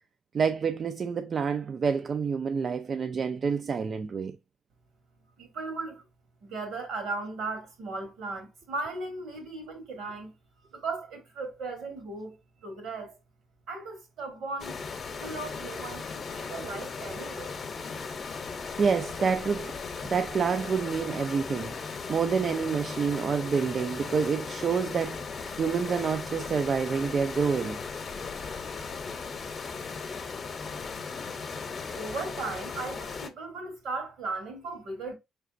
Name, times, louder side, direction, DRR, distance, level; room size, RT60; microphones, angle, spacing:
voice 1, 0.3-4.4 18.8-19.7 20.1-25.2 25.6-27.8, right 6 dB, 45° right, 0.3 m, -28 dB
voice 2, 5.4-6.0 6.4-10.3 10.7-13.2 13.7-14.8 15.1-17.5 32.0-35.1, right 3 dB, 80° right, 1.8 m, -37 dB
sound 1, 14.6-33.3, left 5 dB, 45° left, 0.7 m, -37 dB
4.8 x 3.3 x 2.5 m
cardioid pair, 90°, 0 cm